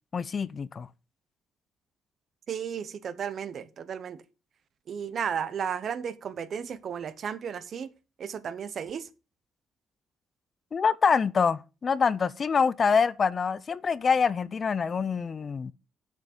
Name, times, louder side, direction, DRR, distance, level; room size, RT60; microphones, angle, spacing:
voice 1, 0.1-0.9 10.7-15.7, left 5 dB, 45° left, 0.6 m, -25 dB
voice 2, 2.5-4.2 4.9-7.9 8.2-9.1, right 7 dB, 55° right, 1.0 m, -34 dB
7.5 x 6.0 x 6.8 m
cardioid pair, 90°, 0 cm